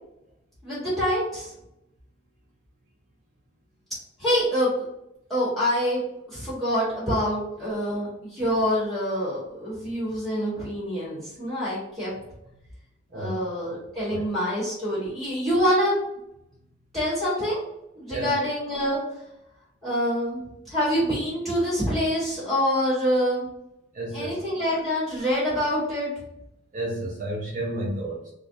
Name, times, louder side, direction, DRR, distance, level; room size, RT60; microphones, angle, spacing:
voice 1, 0.6-1.5 4.2-4.9 5.3-6.0 6.3-12.1 13.1-16.0 16.9-17.6 17.9-19.0 19.8-23.4 24.1-26.1, equal, ahead, -12 dB, 1.2 m, -26 dB
voice 2, 23.9-24.4 26.7-28.3, right 1 dB, 45° right, -3 dB, 0.4 m, -31 dB
2.4 x 2.0 x 2.6 m, 0.84 s
head